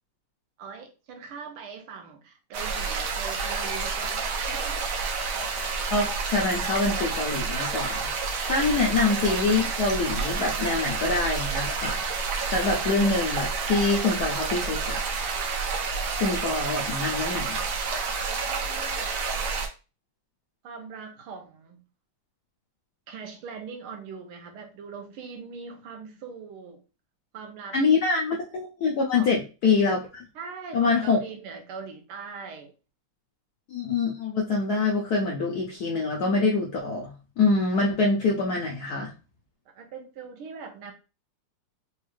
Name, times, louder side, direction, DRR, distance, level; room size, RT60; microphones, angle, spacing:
voice 1, 0.6-4.8 18.2-19.1 20.6-21.8 23.1-26.8 27.3-27.8 29.1-29.4 30.3-32.7 39.7-40.9, right 5 dB, 80° right, 1.6 m, -41 dB
sound 1, 2.5-19.7, right 4 dB, 65° right, 1.1 m, -29 dB
voice 2, 5.9-12.0 12.5-15.0 16.1-17.6 27.7-30.3 30.7-31.2 33.7-39.1, left 3 dB, 75° left, 0.9 m, -25 dB
4.1 x 2.4 x 3.1 m
omnidirectional pair, 2.4 m